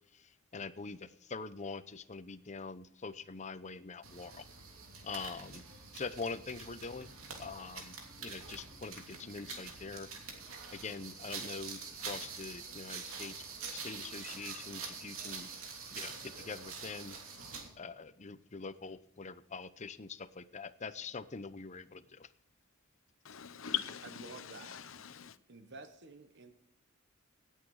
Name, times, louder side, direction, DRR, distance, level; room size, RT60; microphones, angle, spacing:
voice 1, 0.1-4.5 5.0-5.6 5.9-10.1 10.7-13.5 13.7-15.5 15.9-17.5 17.8-22.3, left 4 dB, 35° left, 0.7 m, -44 dB
sound 1, 4.0-17.7, right 5 dB, 85° right, 2.9 m, -46 dB
voice 2, 23.2-25.4, left 11 dB, 70° left, 0.8 m, -41 dB
voice 3, 24.2-24.9 25.5-26.5, right 3 dB, 55° right, 1.1 m, -51 dB
17.5 x 8.5 x 4.8 m
head